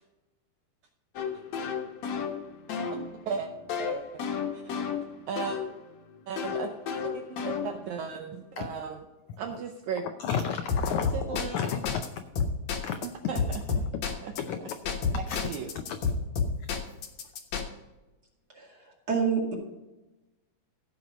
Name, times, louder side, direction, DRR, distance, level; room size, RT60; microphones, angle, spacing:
sound 1, 1.2-5.7 6.4-8.0 10.7-12.1 12.4-13.1 13.4-14.4 14.7-17.6, left 5 dB, 60° left, 2.2 m, -31 dB
voice 1, 3.8-4.2 4.5-4.8 5.3-5.6 6.3-6.7 7.0-9.0 9.4-10.1 11.1-11.6 13.0-13.8 14.2-14.3 15.2-15.7, right 6 dB, 80° right, 4 dB, 1.7 m, -36 dB
voice 2, 10.2-12.0 12.8-13.0 14.4-14.9 15.3-15.5 15.9-16.0, left 7 dB, 90° left, 8 dB, 1.6 m, -32 dB
voice 3, 18.5-19.5, right 6 dB, 30° right, -1 dB, 2.2 m, -28 dB
16.0 x 5.5 x 5.0 m, 1.1 s
omnidirectional pair, 4.1 m